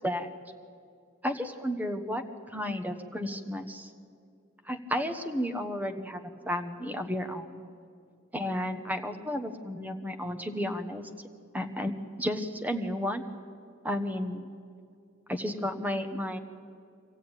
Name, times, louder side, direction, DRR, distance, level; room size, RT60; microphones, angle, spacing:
voice 1, 0.0-0.4 1.2-2.2 2.5-3.9 4.7-7.6 8.3-11.1 11.5-13.2 13.8-14.4 15.3-16.4, equal, 10° right, 8 dB, 1.1 m, -32 dB
24.5 x 15.5 x 9.0 m, 2.5 s
head